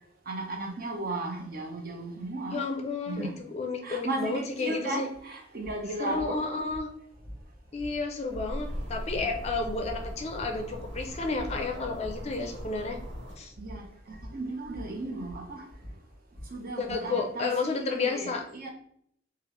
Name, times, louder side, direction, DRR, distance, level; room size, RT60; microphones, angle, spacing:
voice 1, 0.3-2.6 3.1-3.4 3.8-6.4 9.2-9.3 13.6-15.7 16.5-18.7, right 2 dB, 50° right, 0.7 m, -35 dB
voice 2, 2.5-5.1 6.0-6.9 7.7-13.0 13.4-13.5 16.8-18.4, left 3 dB, 35° left, 0.4 m, -31 dB
sound 1, 5.1-5.2 5.6-17.0, equal, 15° right, 1.1 m, -46 dB
sound 2, 8.3-13.4, equal, 75° right, 1.5 m, -40 dB
3.3 x 2.4 x 3.0 m
head